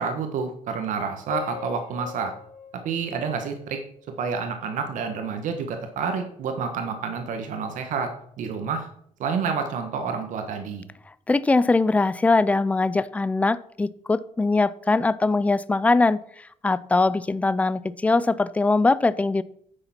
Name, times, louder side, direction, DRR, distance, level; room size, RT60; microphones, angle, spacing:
voice 1, 0.0-2.3 2.8-3.8 4.2-8.9 9.2-10.9, right 5 dB, 80° right, 5 dB, 1.4 m, -29 dB
Piano, 1.3-4.3, left 7 dB, 90° left, 1.8 m, -40 dB
voice 2, 11.3-16.2 16.6-19.4, left 3 dB, 10° left, 17 dB, 0.3 m, -21 dB
10.0 x 6.8 x 5.8 m, 0.66 s
cardioid pair, 175°, 13 cm